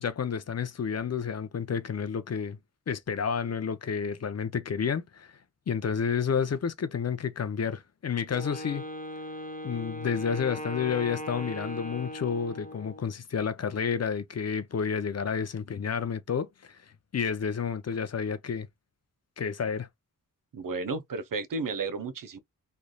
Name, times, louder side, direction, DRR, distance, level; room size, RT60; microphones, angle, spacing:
voice 1, 0.0-2.6 2.9-5.3 5.7-8.8 9.6-16.8 17.1-18.7 19.4-19.9, left 6 dB, 45° left, 0.5 m, -30 dB
Wind instrument woodwind instrument, 8.3-13.1, equal, 25° left, 1.0 m, -39 dB
voice 2, 20.5-22.4, right 4 dB, 65° right, 0.6 m, -33 dB
3.1 x 2.6 x 2.2 m
wide cardioid pair, 65°, 35 cm